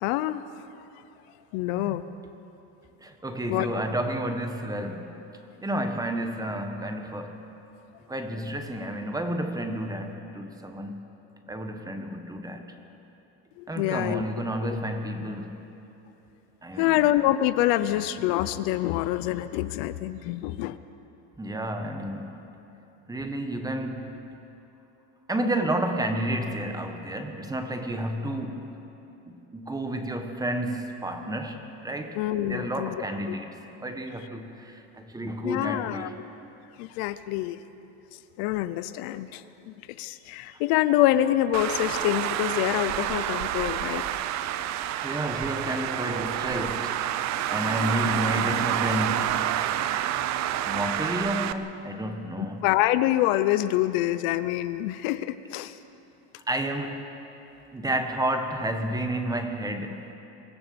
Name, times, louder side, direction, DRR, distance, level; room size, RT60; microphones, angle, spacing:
voice 1, 0.0-0.6 1.5-2.1 3.5-3.7 13.6-14.2 16.8-20.8 32.1-33.4 35.4-36.1 36.8-37.6 38.4-44.0 52.4-55.8, left 14 dB, 75° left, 13 dB, 0.8 m, -26 dB
voice 2, 1.6-2.0 3.0-5.2 5.6-7.5 8.1-11.1 11.5-12.6 13.7-15.6 16.6-17.0 21.4-22.4 23.1-24.1 25.3-28.7 29.3-32.2 32.5-36.2 45.0-47.0 47.5-49.4 50.6-52.6 56.5-57.2 57.7-60.1, right 1 dB, 10° right, 6 dB, 1.5 m, -31 dB
Traffic noise roadway noise, 41.5-51.5, right 11 dB, 50° right, 0.7 m, -28 dB
24.5 x 15.5 x 7.1 m, 3.0 s
cardioid pair, 130°, 36 cm